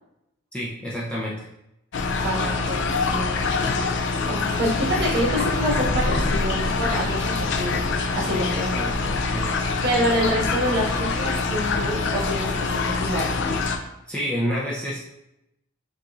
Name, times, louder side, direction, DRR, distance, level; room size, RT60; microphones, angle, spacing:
voice 1, 0.5-1.5 9.3-9.5 14.1-15.0, equal, 5° left, -7 dB, 0.6 m, -28 dB
sound 1, 1.9-13.8, left 3 dB, 55° left, 0.4 m, -25 dB
voice 2, 2.2-3.5 3.9-7.9 8.1-8.9 9.8-13.5, equal, 50° right, -5 dB, 1.7 m, -27 dB
7.4 x 2.6 x 2.5 m, 0.87 s
head